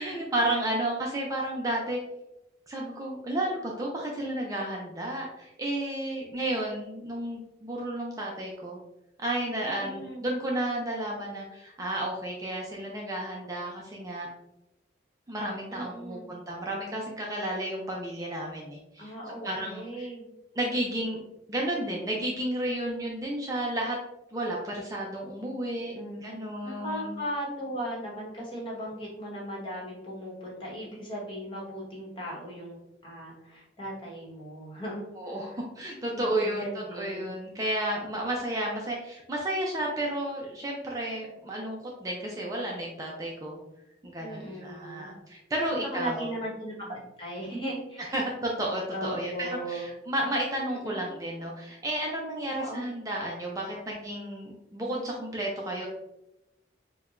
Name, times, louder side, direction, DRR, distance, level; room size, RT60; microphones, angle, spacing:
voice 1, 0.0-2.0 2.7-8.8 9.2-14.3 15.3-19.1 19.4-20.1 20.6-21.2 21.5-24.0 24.3-27.1 35.2-43.6 44.0-46.3 48.1-55.9, right 1 dB, 20° right, -2 dB, 0.4 m, -32 dB
voice 2, 0.7-1.1 9.6-10.3 15.7-16.3 19.0-20.3 25.9-35.6 36.1-37.3 44.2-45.2 45.7-48.1 48.9-49.9 50.7-51.0 52.5-52.9, equal, 30° left, -4 dB, 1.1 m, -38 dB
4.6 x 2.2 x 2.4 m, 0.91 s
head